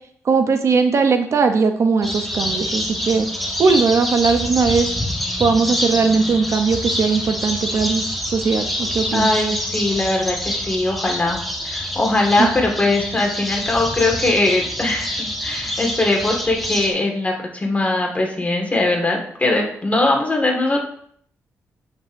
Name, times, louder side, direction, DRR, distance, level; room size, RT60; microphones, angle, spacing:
voice 1, 0.2-3.3 3.6-4.9 5.4-9.3 12.4-12.5, right 4 dB, 55° right, 7 dB, 0.7 m, -19 dB
sound 1, 2.0-16.9, left 1 dB, ahead, 1.3 m, -26 dB
voice 2, 9.1-11.4 11.6-20.8, left 2 dB, 25° left, 1 dB, 1.8 m, -20 dB
9.2 x 5.4 x 2.6 m, 0.64 s
cardioid pair, 80°, 6 cm